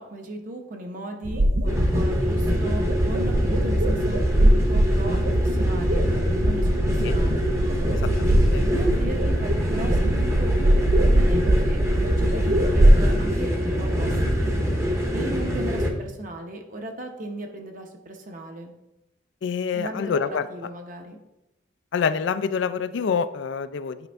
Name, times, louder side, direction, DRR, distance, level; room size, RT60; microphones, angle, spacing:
voice 1, 0.0-6.0 6.4-7.5 8.3-10.0 10.4-10.8 11.1-14.5 15.1-18.7 19.7-21.2, right 1 dB, 40° right, 3 dB, 0.9 m, -37 dB
sound 1, 1.2-13.0, right 1 dB, 80° right, 0.7 m, -22 dB
sound 2, 1.7-15.9, equal, 15° right, 0.8 m, -24 dB
voice 2, 7.9-8.7 19.4-20.5 21.9-24.1, left 6 dB, 65° left, 13 dB, 0.3 m, -27 dB
8.9 x 5.3 x 3.4 m, 0.95 s
head